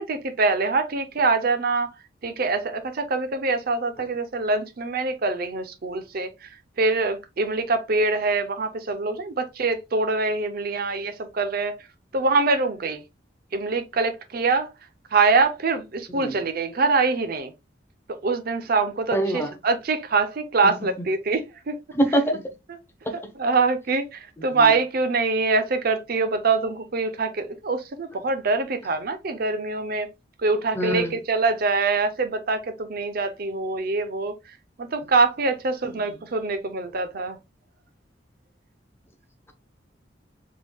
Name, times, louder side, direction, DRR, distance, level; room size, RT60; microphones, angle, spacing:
voice 1, 0.0-1.9 2.2-6.5 6.8-11.7 12.1-13.0 13.5-14.7 15.1-17.5 18.1-21.8 23.1-30.1 30.4-34.3 34.8-37.4, right 3 dB, 55° right, 0.6 m, -24 dB
voice 2, 19.1-19.5 21.9-22.4 24.4-24.7 30.7-31.2 35.8-35.9, right 1 dB, 15° left, 0.8 m, -24 dB
3.6 x 3.5 x 2.3 m
head